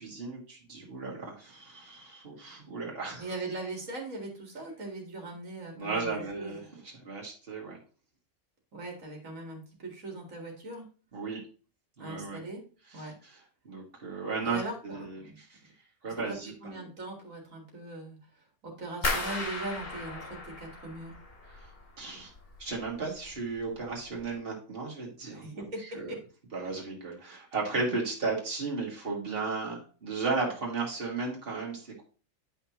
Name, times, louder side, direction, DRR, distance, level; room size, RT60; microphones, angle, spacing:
voice 1, 0.0-3.3 5.8-7.8 11.1-11.4 12.0-12.4 12.9-13.4 13.6-15.6 16.0-16.9 21.5-21.7 22.0-22.3 22.6-25.7 25.9-26.1 26.5-32.0, right 4 dB, 45° right, -2 dB, 2.3 m, -35 dB
voice 2, 3.2-6.7 8.7-10.8 12.0-12.6 12.9-13.2 14.4-15.4 16.2-16.3 16.6-18.2 18.6-21.2 25.2-26.2, right 2 dB, 90° right, 1 dB, 2.3 m, -40 dB
sound 1, 19.0-21.9 22.2-22.9 23.2-23.7 24.1-24.2, left 2 dB, 50° left, 2.5 m, -35 dB
10.0 x 5.8 x 3.0 m, 0.38 s
omnidirectional pair, 1.3 m